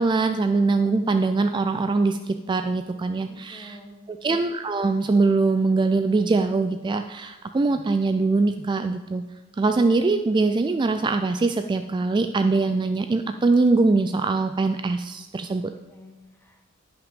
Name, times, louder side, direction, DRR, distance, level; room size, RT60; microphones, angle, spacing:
voice 1, 0.0-3.8 4.1-9.2 9.6-15.7, right 3 dB, 20° right, 8 dB, 0.3 m, -22 dB
voice 2, 3.2-4.0 15.4-15.6 15.9-16.7, equal, 10° left, 2 dB, 1.4 m, -48 dB
15.5 x 5.9 x 5.1 m, 1.2 s
head